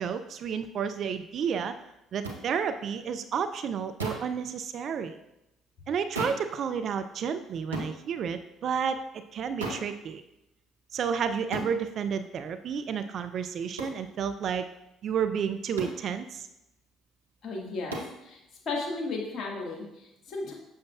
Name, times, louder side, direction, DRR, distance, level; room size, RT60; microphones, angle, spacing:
voice 1, 0.0-1.7 2.1-5.2 5.9-9.0 9.3-10.2 10.9-14.6 15.0-16.5, right 7 dB, 55° right, 10 dB, 0.3 m, -31 dB
sound 1, 2.2-2.4 4.0-4.3 6.2-6.5 7.7-8.0 9.6-9.9 11.5-11.8 13.8-14.0 15.8-16.0 17.9-18.2, right 1 dB, 90° right, 0.7 m, -34 dB
voice 2, 17.4-18.4 18.6-20.5, left 3 dB, 50° left, -1 dB, 1.6 m, -35 dB
7.0 x 6.3 x 2.3 m, 0.88 s
figure-of-eight pair, 50°, 0 cm